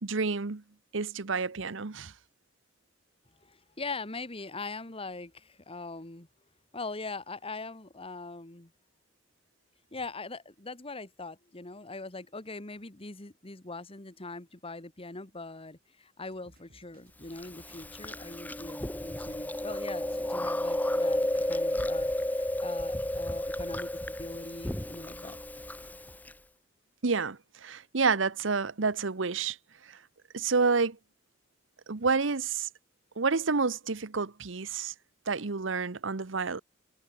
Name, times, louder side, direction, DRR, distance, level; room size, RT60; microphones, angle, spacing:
voice 1, 0.0-0.6 0.9-2.1 27.0-29.6 29.9-30.0 30.3-31.0 31.9-32.7 33.2-34.9 35.3-36.6, right 4 dB, 70° right, 1.0 m, -29 dB
voice 2, 3.4-6.3 6.7-8.7 9.9-25.4, left 3 dB, 30° left, 2.0 m, -42 dB
sound 1, 16.2-26.2, right 1 dB, 50° right, 6.9 m, -61 dB
Chewing mastication, 17.4-26.3, left 1 dB, 10° left, 0.9 m, -32 dB
head